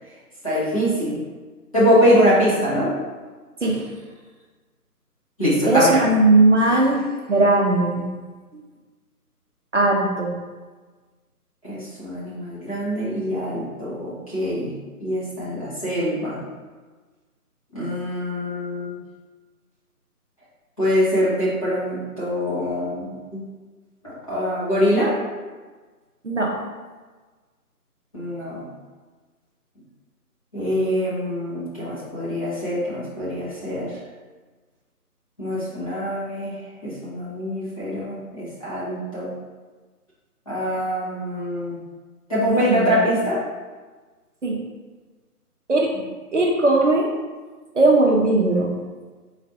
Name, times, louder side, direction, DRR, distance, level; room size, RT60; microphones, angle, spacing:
voice 1, 0.4-1.2 1.7-3.0 5.4-6.0 11.6-14.7 15.0-16.4 17.7-19.0 20.8-23.4 24.0-25.2 28.1-28.6 30.5-33.9 35.4-36.5 36.8-39.3 40.5-41.8 42.3-43.4, equal, 20° left, -10 dB, 0.8 m, -23 dB
voice 2, 3.6-3.9 5.7-8.1 9.7-10.4 26.2-26.6 42.4-43.2 44.4-44.6 45.7-45.9 46.3-47.1 47.7-48.7, right 2 dB, 50° right, -1 dB, 0.6 m, -19 dB
4.0 x 2.4 x 4.3 m, 1.3 s
figure-of-eight pair, 160°, 47 cm